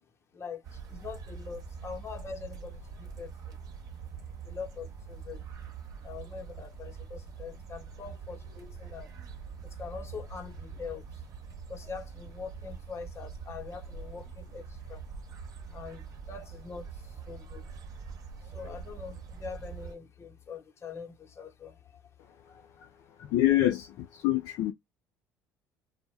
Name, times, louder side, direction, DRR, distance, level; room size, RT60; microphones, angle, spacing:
voice 1, 0.3-3.6 4.4-5.5 6.0-9.1 9.6-11.1 11.7-15.0 15.7-17.7 18.5-22.0 22.3-22.7, left 5 dB, 35° left, 0.8 m, -43 dB
sound 1, 0.6-20.0, right 6 dB, 50° right, 1.0 m, -44 dB
voice 2, 23.3-24.7, left 14 dB, 65° left, 0.3 m, -26 dB
2.1 x 2.1 x 3.2 m
hypercardioid pair, 65°, 8 cm